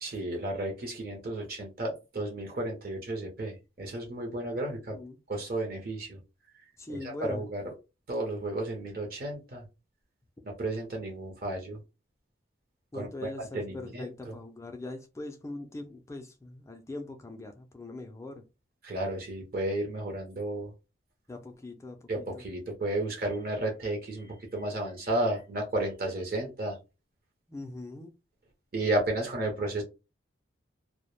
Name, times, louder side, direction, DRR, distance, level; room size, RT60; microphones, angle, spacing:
voice 1, 0.0-5.0 5.3-6.2 6.9-7.6 8.1-9.6 10.4-11.8 12.9-14.3 18.8-20.7 22.1-26.8 28.7-29.8, right 1 dB, 45° right, 0.6 m, -33 dB
voice 2, 4.6-5.2 6.8-7.4 12.9-18.4 21.3-22.4 27.5-28.1, left 2 dB, 15° left, 0.3 m, -41 dB
2.1 x 2.0 x 3.0 m
head